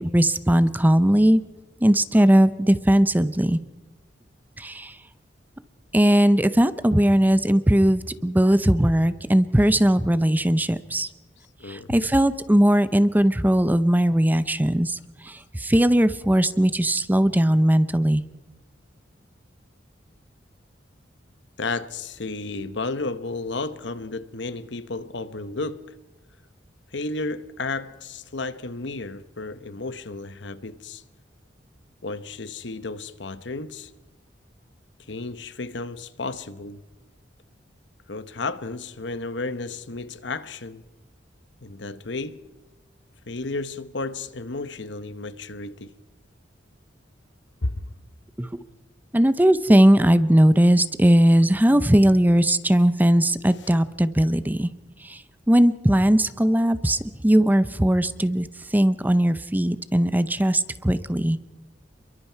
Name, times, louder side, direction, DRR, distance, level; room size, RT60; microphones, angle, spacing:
voice 1, 0.0-1.4 1.8-3.6 4.6-4.9 5.9-11.1 11.7-15.0 15.3-18.2 48.4-48.5 49.1-54.7 55.0-55.2 55.5-58.5 58.7-61.4, right 1 dB, 10° right, 0.7 m, -19 dB
voice 2, 11.6-12.0 21.6-25.9 26.9-31.0 32.0-33.9 35.1-36.8 38.1-40.8 41.6-42.4 43.3-45.9 47.6-47.9 53.6-53.7, left 3 dB, 70° left, 1.1 m, -32 dB
29.0 x 23.0 x 4.6 m
head